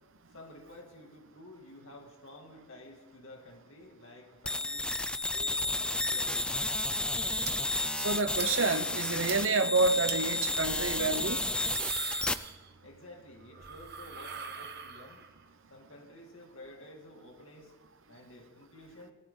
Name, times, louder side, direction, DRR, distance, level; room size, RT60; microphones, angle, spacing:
voice 1, 0.3-4.9 5.3-6.4 12.8-15.2 15.7-17.7 18.1-19.1, left 1 dB, 65° left, 1 dB, 2.5 m, -51 dB
sound 1, 4.5-12.3, left 2 dB, 5° left, 0.4 m, -32 dB
sound 2, 7.4-7.5 7.9-8.0 8.4-8.5 8.8-8.9 9.3-9.4 10.1-10.2 11.3-13.0 13.3-15.4, right 8 dB, 50° right, 1.2 m, -41 dB
voice 2, 8.0-11.4, right 3 dB, 65° right, 10 dB, 0.9 m, -28 dB
21.0 x 14.0 x 3.9 m, 1.1 s
head